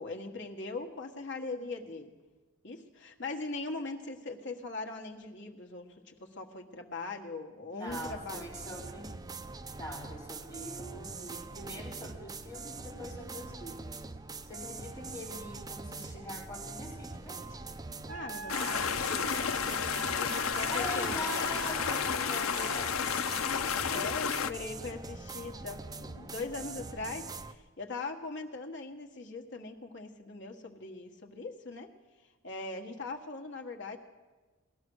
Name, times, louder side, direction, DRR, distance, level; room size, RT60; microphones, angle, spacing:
voice 1, 0.0-2.1 2.6-8.5 18.1-21.2 23.9-31.9 32.4-34.0, left 3 dB, 55° left, 3 dB, 1.5 m, -41 dB
voice 2, 7.7-9.1 9.8-14.0 14.4-17.6 20.7-24.5 24.8-25.0, equal, 20° left, -5 dB, 4.4 m, -43 dB
sound 1, 7.9-27.5, right 3 dB, 15° right, 0.5 m, -43 dB
Wind instrument woodwind instrument, 18.1-22.9, right 3 dB, 80° right, 0.7 m, -44 dB
sound 2, 18.5-24.5, left 7 dB, 75° left, 0.6 m, -31 dB
18.5 x 12.5 x 6.3 m, 1.3 s
head